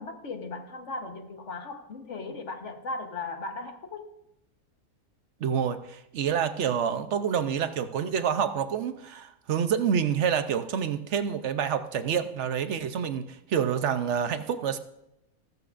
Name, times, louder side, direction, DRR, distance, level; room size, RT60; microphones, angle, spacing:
voice 1, 0.0-4.1, left 3 dB, 55° left, 5 dB, 1.5 m, -37 dB
voice 2, 5.4-14.8, right 8 dB, 60° right, 10 dB, 0.9 m, -28 dB
15.0 x 14.5 x 2.5 m, 0.85 s
omnidirectional pair, 1.5 m